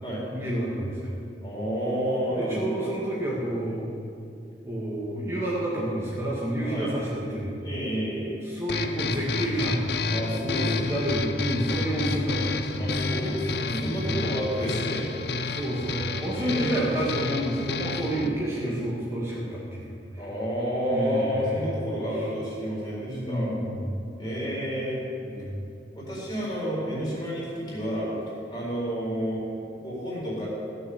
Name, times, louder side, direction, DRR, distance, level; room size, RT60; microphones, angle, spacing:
voice 1, 0.3-1.1 2.3-3.9 4.6-7.6 8.4-10.1 10.8-12.9 13.6-14.1 15.5-20.3 20.9-21.7 22.1-22.3 23.1-24.0 25.2-25.6, right 1 dB, 15° right, -7 dB, 1.9 m, -30 dB
voice 2, 1.4-2.8 6.6-6.9 7.6-8.4 10.1-10.9 12.8-15.1 16.4-16.9 18.1-18.3 18.6-18.7 20.2-23.5 24.2-25.0 25.9-28.1 28.5-29.4 29.7-30.5, equal, 25° left, -6 dB, 4.1 m, -30 dB
sound 1, 8.7-18.3, left 3 dB, 65° left, 0.7 m, -30 dB
15.5 x 6.8 x 7.9 m, 2.4 s
head